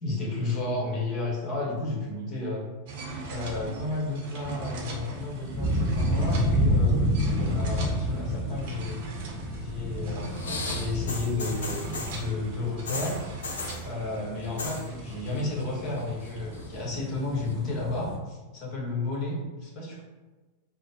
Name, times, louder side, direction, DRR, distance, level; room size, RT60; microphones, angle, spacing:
voice 1, 0.0-2.6 3.2-9.0 9.6-13.2 13.8-20.0, left 2 dB, 35° left, -3 dB, 1.3 m, -32 dB
sound 1, 2.9-16.8, right 3 dB, 50° right, 0.8 m, -41 dB
sound 2, 5.1-18.2, equal, 5° right, 0.8 m, -30 dB
sound 3, 10.3-12.2 12.9-13.8 14.4-14.9 15.1-15.6 16.0-16.7 17.5-17.6, left 3 dB, 65° left, 0.5 m, -36 dB
3.8 x 2.1 x 4.2 m, 1.2 s
figure-of-eight pair, 90°, 0 cm